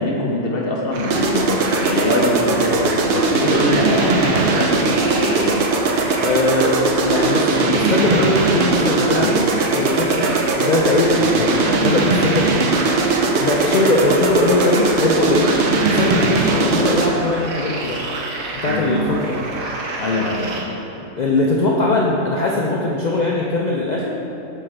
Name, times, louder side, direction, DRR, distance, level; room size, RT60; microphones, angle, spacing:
voice 1, 0.0-5.6 9.2-9.4 11.2-11.4 16.2-16.5 18.6-19.0 20.0-20.7, left 2 dB, 50° left, -2 dB, 0.8 m, -23 dB
sound 1, 0.9-20.6, right 2 dB, 90° right, 1.2 m, -29 dB
sound 2, 1.1-17.3, right 3 dB, 60° right, 0.5 m, -19 dB
voice 2, 6.2-12.8 13.4-15.5 15.9-18.0 18.6-19.4 21.0-24.1, left 2 dB, 85° left, -3 dB, 0.3 m, -20 dB
7.6 x 4.6 x 3.3 m, 2.9 s
omnidirectional pair, 1.4 m